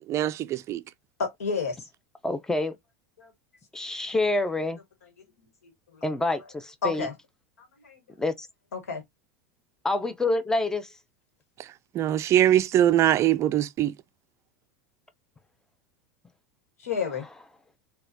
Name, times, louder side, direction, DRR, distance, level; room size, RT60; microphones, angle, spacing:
voice 1, 0.1-0.8 11.9-13.9, right 12 dB, 40° right, 0.3 m, -22 dB
voice 2, 1.2-1.9 3.2-3.3 5.9-6.0 6.8-7.1 7.6-8.0 8.7-9.0 16.8-17.3, left 5 dB, 85° left, 1.2 m, -30 dB
voice 3, 2.2-2.7 3.7-4.8 6.0-7.1 8.2-8.5 9.8-10.9, left 2 dB, 5° left, 0.5 m, -27 dB
3.9 x 2.3 x 2.6 m
hypercardioid pair, 95°, 8 cm